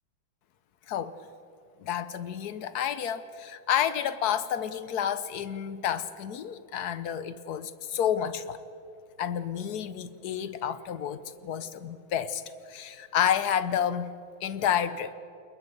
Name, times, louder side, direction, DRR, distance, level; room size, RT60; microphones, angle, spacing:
voice 1, 0.9-1.2 1.8-8.6 9.2-14.1 14.4-15.1, left 9 dB, 60° left, 13 dB, 1.2 m, -30 dB
29.0 x 21.5 x 5.4 m, 2.6 s
omnidirectional pair, 2.2 m